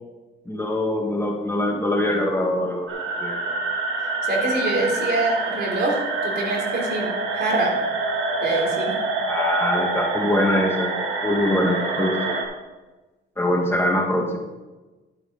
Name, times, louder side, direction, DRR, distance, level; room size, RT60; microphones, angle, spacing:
voice 1, 0.5-3.6 9.3-10.9 11.2-12.4 13.4-14.4, left 1 dB, 10° left, 0 dB, 1.7 m, -23 dB
sound 1, 2.9-12.4, right 3 dB, 85° right, 2.0 m, -26 dB
voice 2, 4.2-7.8 8.4-9.0, right 2 dB, 55° right, -1 dB, 3.4 m, -25 dB
10.5 x 8.8 x 4.0 m, 1.2 s
cardioid pair, 90°, 20 cm